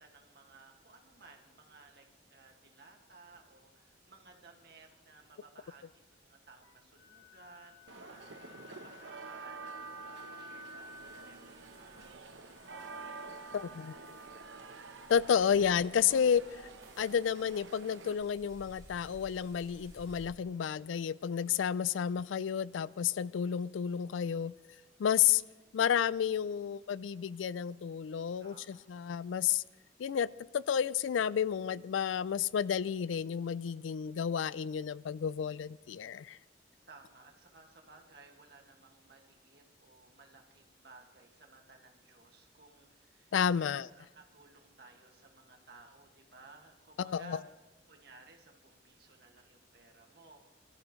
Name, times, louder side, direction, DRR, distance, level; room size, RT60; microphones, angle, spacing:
voice 1, 0.0-13.6 14.2-14.4 28.4-29.2 36.9-47.5 47.9-50.5, right 3 dB, 55° right, 1.9 m, -58 dB
Wind instrument woodwind instrument, 6.6-14.4, left 2 dB, 70° left, 1.6 m, -55 dB
sound 1, 7.9-18.1, right 4 dB, 80° right, 0.9 m, -49 dB
sound 2, 10.8-20.3, right 1 dB, 20° right, 3.1 m, -58 dB
voice 2, 13.5-13.9 15.1-16.4 17.0-24.5 25.0-25.4 25.7-29.6 30.0-30.3 30.5-36.4 43.3-43.9 47.0-47.4, left 8 dB, 85° left, 0.4 m, -31 dB
22.5 x 13.0 x 3.2 m
head